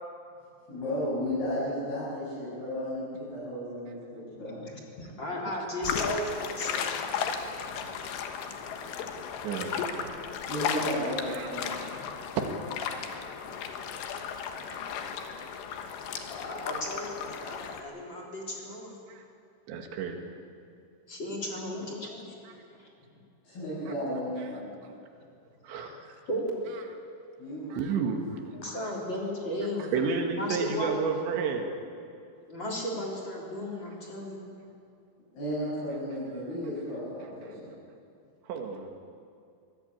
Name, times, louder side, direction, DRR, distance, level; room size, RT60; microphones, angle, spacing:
voice 1, 0.7-4.6 7.7-7.8 10.5-11.7 23.4-24.7 27.4-27.7 35.3-37.7, equal, 55° left, -9 dB, 9.0 m, -34 dB
voice 2, 5.0-7.0 16.3-18.9 21.1-22.9 25.1-25.2 25.7-26.0 26.3-26.6 28.5-29.9 30.3-30.9 32.5-34.5, left 1 dB, 25° left, -1 dB, 3.6 m, -35 dB
sound 1, 5.8-17.8, left 7 dB, 75° left, 3.4 m, -35 dB
voice 3, 9.4-10.2 11.3-11.5 11.8-11.9 14.7-14.8 19.1-19.2 19.7-20.2 25.6-25.9 27.7-28.4 29.9-31.7 38.5-38.9, right 5 dB, 75° right, 3 dB, 4.1 m, -31 dB
24.5 x 17.5 x 8.8 m, 2.4 s
omnidirectional pair, 5.3 m